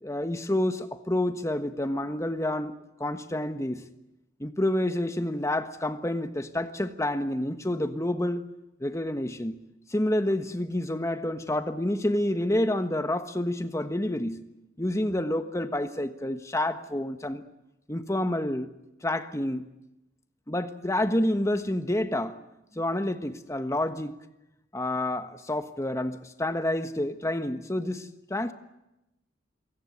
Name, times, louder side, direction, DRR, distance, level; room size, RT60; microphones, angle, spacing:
voice 1, 0.0-2.7 3.0-3.8 4.4-8.4 8.8-9.6 9.9-14.4 14.8-17.4 17.9-18.7 19.0-19.7 20.5-22.4 22.7-24.1 24.7-28.5, left 1 dB, 15° left, 1.3 m, -28 dB
27.0 x 17.0 x 9.4 m
head